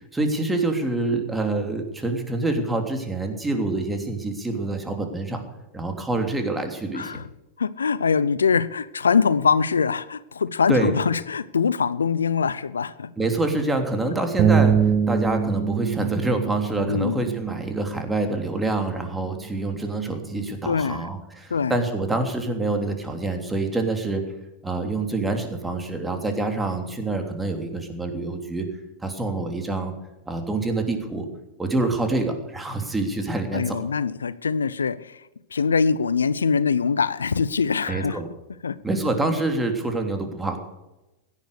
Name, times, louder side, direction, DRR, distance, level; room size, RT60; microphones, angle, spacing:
voice 1, 0.1-5.4 5.7-7.2 10.7-10.9 13.2-24.2 24.6-28.7 29.0-29.9 30.3-31.3 31.6-33.8 37.9-38.3 38.8-40.6, right 2 dB, 10° right, 3.2 m, -26 dB
voice 2, 7.6-13.1 16.9-17.2 20.7-21.1 21.5-21.8 33.5-35.2 35.5-38.2 38.6-38.8, left 5 dB, 85° left, 0.5 m, -23 dB
sound 1, 14.4-20.6, right 7 dB, 40° right, 1.6 m, -25 dB
16.5 x 11.0 x 6.6 m
hypercardioid pair, 100°, 0 cm